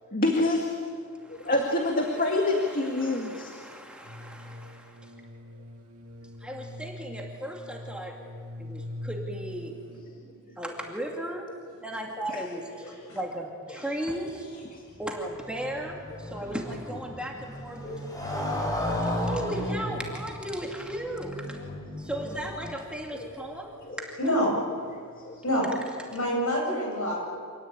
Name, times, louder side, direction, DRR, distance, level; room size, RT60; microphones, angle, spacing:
voice 1, 0.1-0.7 1.3-3.5 14.7-14.8 17.8-18.0 18.5-18.8 19.1-19.3 23.9-24.0 25.2-25.4, left 2 dB, 40° left, 2 dB, 2.1 m, -27 dB
voice 2, 1.2-1.5 2.0-5.1 6.4-8.2 8.6-9.8 10.6-11.5 11.8-14.5 15.0-18.1 19.1-21.6 22.0-24.1, right 1 dB, 5° right, 0 dB, 2.3 m, -36 dB
sound 1, 4.0-10.0, left 1 dB, 65° right, 2.7 m, -42 dB
Motorcycle, 15.0-23.1, left 1 dB, 15° left, 5.0 m, -34 dB
voice 3, 24.2-24.5 25.4-25.7 26.1-27.2, equal, 65° left, 0 dB, 8.0 m, -26 dB
27.0 x 19.0 x 8.8 m, 2.3 s
head